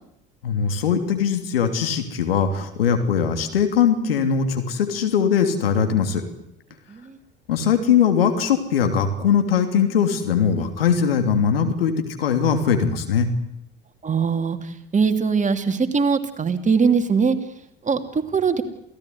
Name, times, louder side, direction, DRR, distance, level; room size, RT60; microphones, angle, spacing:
voice 1, 0.4-6.2 7.5-11.9 12.2-13.3, left 7 dB, 80° left, 6 dB, 3.2 m, -20 dB
voice 2, 14.0-14.6 14.9-17.4 17.9-18.0 18.3-18.6, right 5 dB, 25° right, 7 dB, 2.9 m, -21 dB
28.0 x 17.0 x 9.7 m, 0.78 s
figure-of-eight pair, 65°, 29 cm